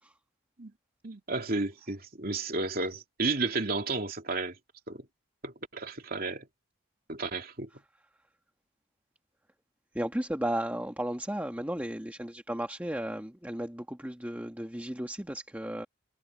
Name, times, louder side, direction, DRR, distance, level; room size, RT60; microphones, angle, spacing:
voice 1, 1.0-4.5 4.9-5.0 5.4-6.5 7.1-7.7, right 3 dB, 45° right, 2.8 m, -32 dB
voice 2, 9.9-15.9, right 1 dB, 10° right, 1.4 m, -34 dB
head